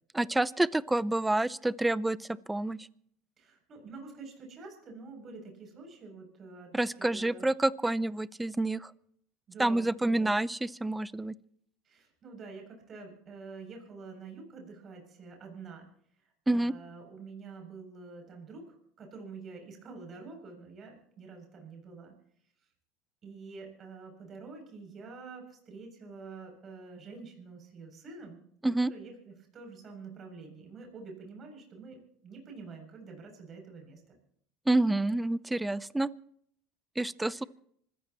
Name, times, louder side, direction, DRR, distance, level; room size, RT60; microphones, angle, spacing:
voice 1, 0.1-2.2 2.5-2.9 6.7-8.9 9.6-11.3 16.5-16.7 28.6-28.9 34.7-36.1 37.0-37.4, right 2 dB, 10° right, 19 dB, 0.6 m, -28 dB
voice 2, 3.4-7.4 9.5-10.3 11.9-15.9 16.5-22.1 23.2-34.0 37.4-37.5, right 4 dB, 40° right, 3 dB, 7.4 m, -47 dB
26.0 x 15.5 x 3.0 m, 0.65 s
hypercardioid pair, 90°, 0 cm